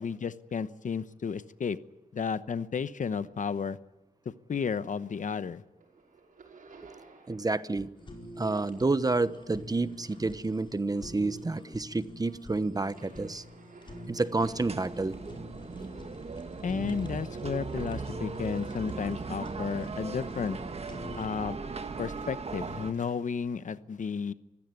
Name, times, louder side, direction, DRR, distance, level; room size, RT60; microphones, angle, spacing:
voice 1, 0.0-1.8 2.1-3.8 4.2-5.6 16.6-20.6 21.2-21.6 22.0-24.3, left 6 dB, 65° left, 14 dB, 1.0 m, -33 dB
sound 1, 4.8-5.3 5.6-7.6 7.9-10.8 11.2-19.5 20.0-20.7 21.5-23.2, right 4 dB, 75° right, 6.0 m, -59 dB
voice 2, 7.3-7.9 8.4-13.4 14.1-15.3, right 3 dB, 25° right, 14 dB, 1.0 m, -29 dB
Fire, 8.0-21.3, left 1 dB, 35° left, 5.2 m, -46 dB
sound 2, 14.4-22.9, right 4 dB, 45° right, 1.6 m, -38 dB
25.0 x 16.0 x 9.5 m, 0.99 s
cardioid pair, 70°, 14 cm